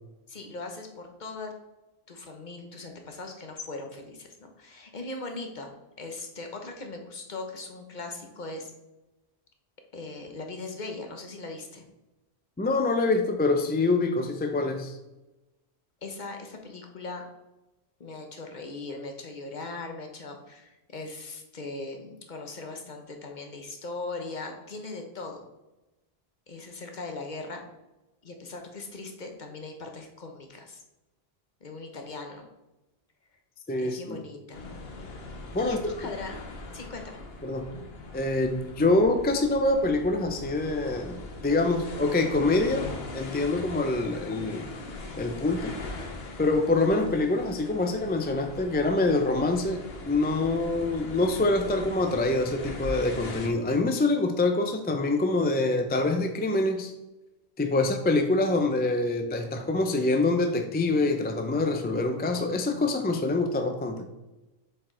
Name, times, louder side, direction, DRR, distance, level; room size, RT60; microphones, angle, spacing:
voice 1, 0.3-1.5 2.1-5.7 6.0-8.7 9.9-11.9 16.0-17.2 18.0-25.4 26.5-27.6 28.2-30.8 31.6-32.5 33.8-34.6 35.6-36.4 36.7-37.2, left 3 dB, 45° left, 3 dB, 1.0 m, -39 dB
voice 2, 12.6-15.0 33.7-34.2 35.5-35.8 37.4-37.7 38.1-44.7 45.1-45.8 46.4-56.9 57.6-64.1, left 2 dB, 15° left, 5 dB, 0.4 m, -25 dB
sound 1, 34.5-53.5, left 2 dB, 70° left, 1.2 m, -40 dB
7.6 x 4.6 x 3.8 m, 1.0 s
omnidirectional pair, 1.1 m